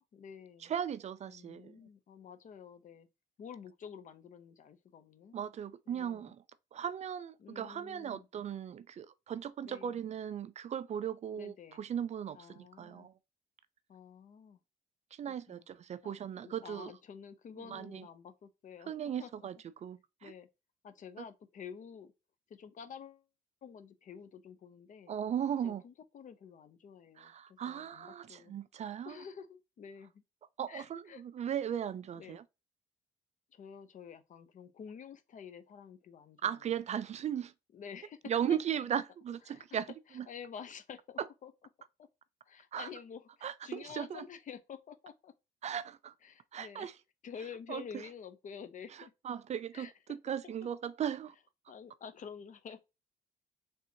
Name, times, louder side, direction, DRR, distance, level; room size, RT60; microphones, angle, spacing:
voice 1, 0.0-0.7 1.3-3.1 3.4-5.4 5.9-6.4 7.4-8.3 9.6-10.0 11.3-11.8 12.3-13.1 13.9-14.6 15.3-15.7 16.0-16.1 16.4-19.5 20.2-20.5 20.8-22.1 22.5-23.2 23.6-25.1 25.6-28.5 29.0-30.2 30.7-31.2 32.1-32.4 33.5-36.5 37.7-38.2 38.5-38.6 39.5-39.8 40.1-41.5 42.0-42.1 42.4-45.3 46.2-46.9 47.2-49.1 49.7-50.5 51.7-52.8, left 7 dB, 50° left, 0.8 m, -49 dB
voice 2, 0.6-1.8 5.3-6.4 6.7-13.1 15.1-16.9 17.7-18.1 18.9-20.3 25.1-25.8 27.2-29.2 30.6-32.4 36.4-37.5 38.2-40.3 42.7-42.9 43.4-44.2 45.6-46.1 46.5-46.9 47.7-47.8 49.2-51.3, right 9 dB, 45° right, 0.4 m, -37 dB
4.2 x 3.5 x 2.8 m
cardioid pair, 90°, 16 cm